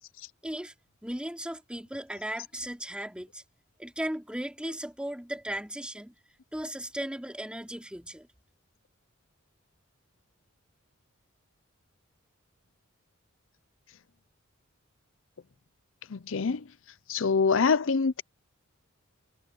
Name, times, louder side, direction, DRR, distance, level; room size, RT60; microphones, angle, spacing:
voice 1, 0.4-0.7 1.0-3.4 3.8-6.1 6.5-8.3, right 1 dB, 5° right, 4.1 m, -36 dB
voice 2, 16.1-16.6 17.1-18.2, left 5 dB, 65° left, 0.6 m, -25 dB
head